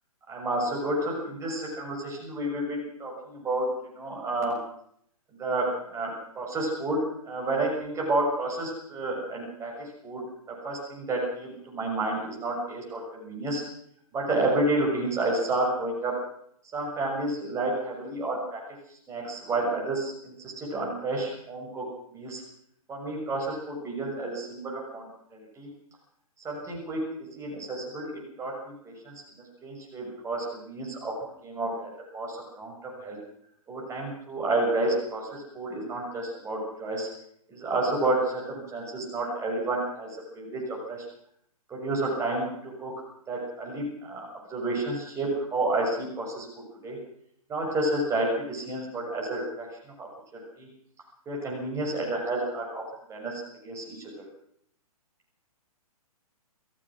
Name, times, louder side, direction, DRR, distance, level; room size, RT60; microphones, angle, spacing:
voice 1, 0.3-3.7 3.9-4.6 5.4-10.2 10.6-13.6 14.1-16.1 16.7-18.6 18.9-21.8 22.1-22.4 22.9-25.7 26.4-29.1 29.6-31.1 31.4-31.7 32.1-33.2 33.7-37.1 37.5-41.0 41.7-42.9 43.3-46.5 46.8-47.0 47.5-49.7 50.0-50.1 50.3-50.7 51.2-52.8 53.1-54.2, right 2 dB, 15° right, -2 dB, 6.7 m, -30 dB
27.0 x 15.5 x 6.3 m, 0.69 s
figure-of-eight pair, 125°, 19 cm